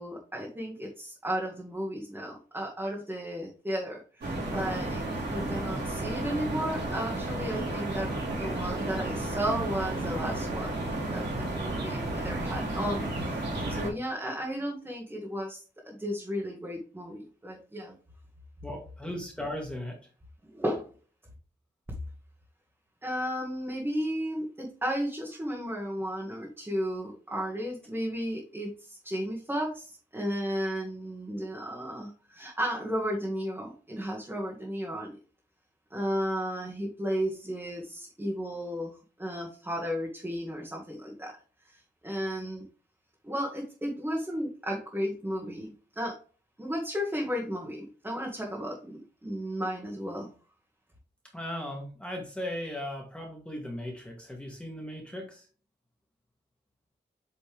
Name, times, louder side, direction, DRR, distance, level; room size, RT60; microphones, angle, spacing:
voice 1, 0.0-10.7 11.1-17.9 20.5-20.9 23.0-35.2 35.9-41.3 41.6-42.7 43.2-46.1 46.6-50.3, equal, 10° right, -2 dB, 1.4 m, -34 dB
sound 1, 4.2-13.9, right 2 dB, 75° right, 3.1 m, -32 dB
voice 2, 18.6-20.0 51.3-55.4, left 1 dB, 5° left, 0 dB, 1.7 m, -37 dB
8.4 x 4.2 x 3.4 m, 0.38 s
wide cardioid pair, 180°, 18 cm